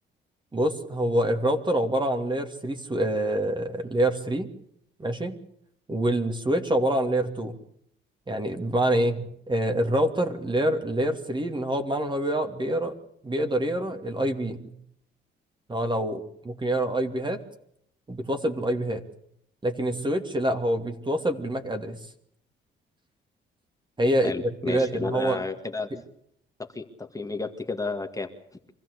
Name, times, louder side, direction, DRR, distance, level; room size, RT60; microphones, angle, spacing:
voice 1, 0.5-4.5 5.0-5.4 5.9-7.6 8.3-13.0 13.2-14.7 15.7-17.4 18.1-19.0 19.6-22.0 24.0-24.3 24.7-25.4 25.9-26.0, right 1 dB, 25° right, 6 dB, 2.7 m, -26 dB
voice 2, 24.2-25.9 26.6-28.3, left 3 dB, 15° left, 5 dB, 2.1 m, -32 dB
25.0 x 15.5 x 8.3 m, 0.70 s
cardioid pair, 90°, 20 cm